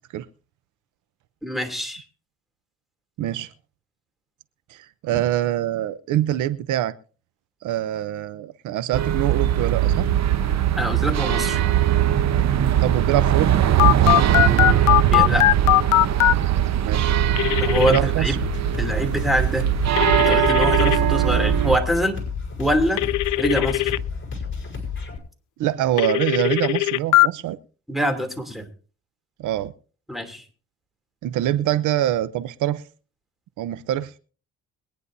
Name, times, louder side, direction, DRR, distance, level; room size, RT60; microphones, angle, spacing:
voice 1, 1.4-2.0 10.8-11.6 14.3-15.6 17.6-18.4 18.8-19.7 20.2-22.2 22.6-23.0 23.4-23.9 27.9-28.7 30.1-30.4, equal, ahead, 5 dB, 2.8 m, -25 dB
voice 2, 3.2-3.5 4.7-6.9 7.6-10.1 12.8-13.6 16.8-17.1 17.9-18.3 25.6-27.6 29.4-29.7 31.2-32.8 33.6-34.1, right 13 dB, 85° right, 15 dB, 0.7 m, -24 dB
sound 1, 8.9-21.8, right 11 dB, 60° right, 1.0 m, -20 dB
Telephone, 13.8-16.3 17.4-18.0 20.0-21.0 23.0-24.0 26.0-27.3, left 17 dB, 75° left, 0.5 m, -19 dB
sound 2, 18.3-25.2, left 5 dB, 40° left, 5.5 m, -31 dB
23.0 x 9.8 x 2.7 m, 0.39 s
cardioid pair, 90°, 30 cm